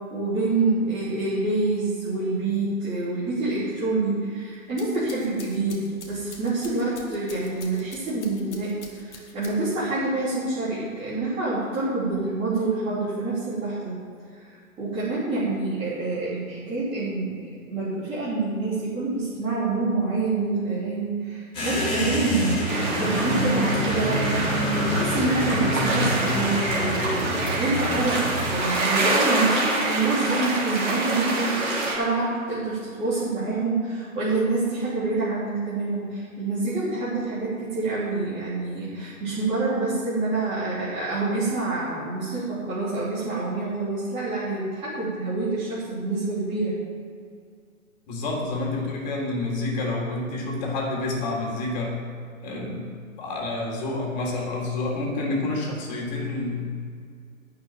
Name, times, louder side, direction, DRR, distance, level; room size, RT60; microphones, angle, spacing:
voice 1, 0.1-14.0 14.4-14.5 14.8-17.4 17.7-46.8, right 3 dB, 15° right, -11 dB, 3.0 m, -27 dB
sound 1, 4.5-9.8, left 4 dB, 55° left, 2.3 m, -46 dB
sound 2, 21.5-28.5, equal, 10° left, 3.7 m, -27 dB
sound 3, 22.7-32.0, right 2 dB, 35° right, 3.4 m, -26 dB
voice 2, 48.1-51.9 52.4-52.9 53.2-56.7, left 2 dB, 30° left, -2 dB, 3.4 m, -28 dB
12.0 x 6.1 x 9.0 m, 2.2 s
figure-of-eight pair, 130°, 42 cm